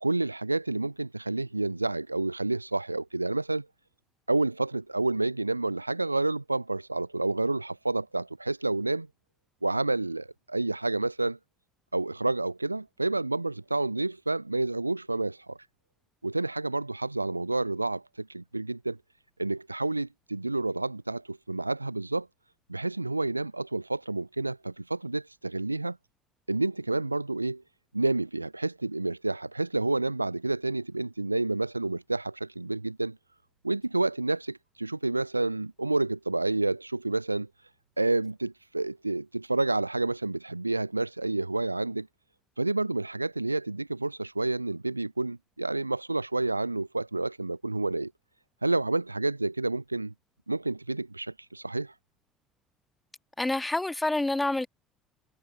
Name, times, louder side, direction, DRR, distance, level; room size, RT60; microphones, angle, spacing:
voice 1, 0.0-3.7 4.3-9.1 9.6-11.4 11.9-15.6 16.2-19.0 19.4-22.3 22.7-26.0 26.5-27.6 27.9-33.2 33.6-37.5 38.0-42.1 42.6-48.1 48.6-50.1 50.5-51.9, right 2 dB, 85° right, 0.5 m, -29 dB
voice 2, 53.4-54.7, left 2 dB, 10° left, 1.9 m, -27 dB
figure-of-eight pair, 60°, 0 cm